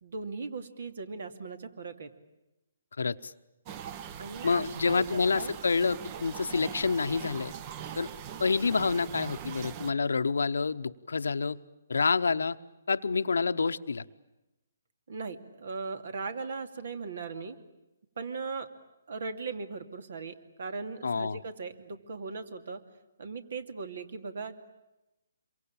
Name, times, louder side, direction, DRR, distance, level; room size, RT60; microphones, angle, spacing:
voice 1, 0.0-2.1 4.2-5.0 5.3-5.6 15.1-17.6 18.2-18.7 19.1-22.8 23.2-24.6, right 4 dB, 65° right, 9 dB, 2.5 m, -38 dB
voice 2, 3.0-3.3 4.4-7.5 8.0-8.1 8.4-11.6 11.9-12.6 12.9-14.0 21.0-21.4, left 4 dB, 80° left, 12 dB, 1.0 m, -28 dB
sound 1, 3.7-9.9, right 9 dB, 30° right, 1.0 m, -41 dB
27.0 x 23.5 x 8.8 m, 0.97 s
hypercardioid pair, 145°, 0 cm